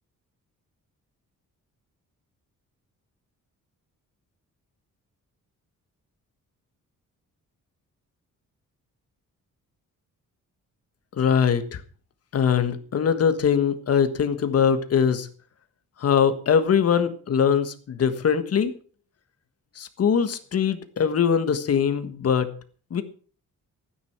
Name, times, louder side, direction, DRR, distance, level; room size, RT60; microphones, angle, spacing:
voice 1, 11.2-11.8 12.3-15.3 16.0-18.7 19.8-22.5 22.9-23.0, left 7 dB, 50° left, 10 dB, 1.5 m, -22 dB
14.5 x 9.8 x 6.0 m, 0.43 s
wide cardioid pair, 180°, 32 cm